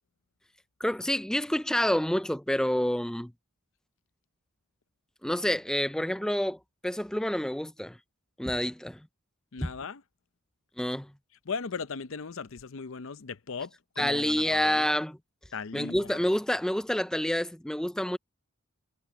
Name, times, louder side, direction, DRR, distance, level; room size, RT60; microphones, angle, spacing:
voice 1, 0.8-3.3 5.2-8.0 8.4-9.0 9.6-9.7 10.8-11.1 14.0-15.2 15.7-18.2, left 1 dB, 5° left, 0.4 m, -28 dB
voice 2, 9.5-10.0 11.5-14.9 15.5-16.2, left 5 dB, 65° left, 0.7 m, -38 dB
head